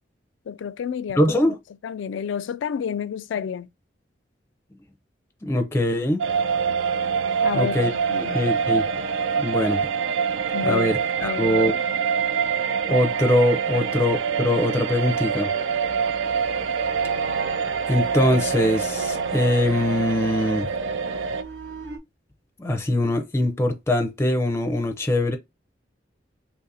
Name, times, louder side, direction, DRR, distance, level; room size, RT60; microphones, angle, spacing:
voice 1, 0.5-1.2 1.8-3.7 7.4-8.4 10.5-11.8 13.7-13.9, left 7 dB, 80° left, 0.3 m, -30 dB
voice 2, 1.2-1.6 5.4-6.2 7.5-7.9 8.2-8.9 9.4-9.9 10.6-11.7 12.9-15.5 17.9-20.7 22.6-25.4, left 1 dB, 15° left, 0.5 m, -22 dB
sound 1, 6.2-21.4, right 6 dB, 85° right, 0.4 m, -25 dB
sound 2, 15.8-22.0, right 4 dB, 60° right, 0.8 m, -39 dB
2.9 x 2.5 x 4.0 m
head